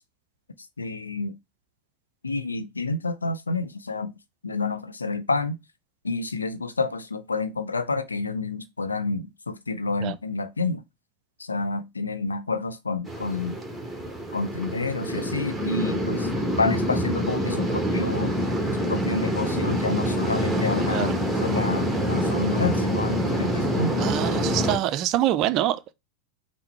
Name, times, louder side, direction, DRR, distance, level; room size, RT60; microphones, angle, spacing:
voice 1, 0.8-1.3 2.2-4.1 4.4-5.6 6.0-10.8 11.4-13.6 14.3-18.3 18.9-21.1 21.4-24.0, left 3 dB, 75° left, 0.5 m, -29 dB
sound 1, 13.1-24.8, equal, 5° right, 1.1 m, -26 dB
voice 2, 20.8-21.1 24.0-25.9, right 13 dB, 40° right, 0.4 m, -25 dB
5.7 x 2.1 x 4.3 m
figure-of-eight pair, 90°, 0 cm